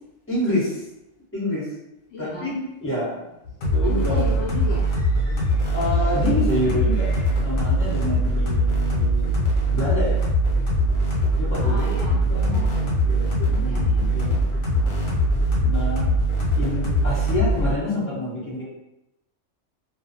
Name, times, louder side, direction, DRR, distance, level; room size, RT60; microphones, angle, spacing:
voice 1, 0.3-0.9 1.3-1.7 2.2-3.3 3.7-4.2 5.7-7.1 7.4-9.3 9.7-10.2 11.3-14.4 15.6-16.2 16.5-18.6, left 1 dB, 10° left, -9 dB, 1.1 m, -28 dB
voice 2, 2.1-2.7 3.5-6.2 6.6-7.4 11.6-12.7 13.3-15.3 16.6-17.3, left 2 dB, 65° left, -6 dB, 0.8 m, -37 dB
sound 1, 3.6-17.7, equal, 85° left, 1.1 m, -22 dB
2.5 x 2.3 x 2.7 m, 0.89 s
omnidirectional pair, 1.3 m